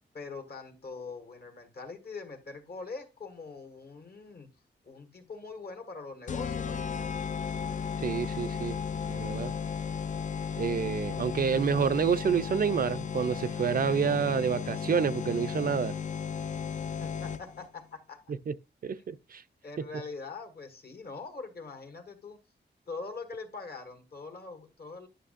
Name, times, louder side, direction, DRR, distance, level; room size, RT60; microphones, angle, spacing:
voice 1, 0.1-4.5 4.8-7.1 10.8-11.3 17.0-18.3 19.0-19.1 19.6-22.4 22.9-25.1, left 4 dB, 55° left, 1.6 m, -43 dB
sound 1, 6.3-17.7, left 6 dB, 40° left, 0.4 m, -35 dB
voice 2, 8.0-8.8 9.1-9.5 10.6-15.9 18.5-18.6 18.8-19.4, right 6 dB, 50° right, 0.4 m, -28 dB
11.0 x 6.4 x 2.5 m
wide cardioid pair, 115°, 19 cm